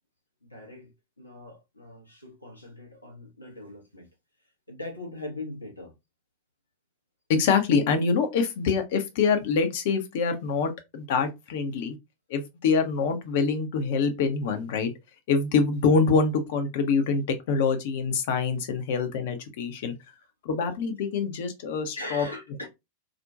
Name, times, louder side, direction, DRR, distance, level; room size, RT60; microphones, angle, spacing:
voice 1, 0.4-0.9 1.2-4.1 4.7-5.9 22.0-22.7, left 2 dB, 85° left, 0.7 m, -40 dB
voice 2, 7.3-12.0 12.3-14.9 15.3-19.9 20.4-22.3, left 5 dB, 50° left, 0.5 m, -25 dB
2.4 x 2.1 x 2.5 m
figure-of-eight pair, 90°, 0 cm